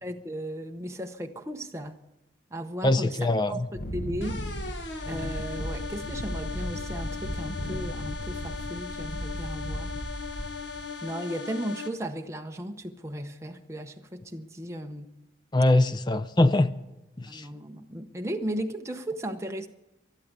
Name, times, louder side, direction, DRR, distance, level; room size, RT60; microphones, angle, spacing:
voice 1, 0.0-2.0 2.5-4.4 5.1-10.0 10.3-10.5 11.0-15.1 17.3-19.7, right 1 dB, 15° right, 0.8 m, -36 dB
voice 2, 2.8-3.5 15.5-16.7 17.2-17.4, left 2 dB, 25° left, 0.5 m, -22 dB
Wind, 3.7-10.9, equal, 55° left, 1.3 m, -36 dB
sound 1, 4.2-11.9, left 5 dB, 75° left, 1.6 m, -38 dB
12.5 x 12.0 x 8.1 m
head